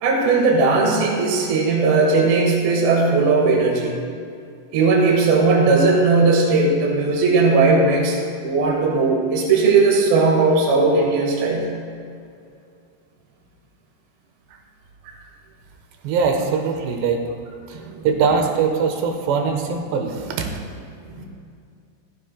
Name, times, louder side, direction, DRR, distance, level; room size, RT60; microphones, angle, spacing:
voice 1, 0.0-4.0 4.7-8.2 8.4-11.7 15.0-15.1 17.7-18.0 21.1-21.3, right 3 dB, 65° right, -1 dB, 3.3 m, -17 dB
voice 2, 16.0-17.2 17.7-20.5, right 5 dB, 85° right, 4 dB, 3.2 m, -22 dB
15.5 x 14.5 x 2.2 m, 2.4 s
omnidirectional pair, 4.9 m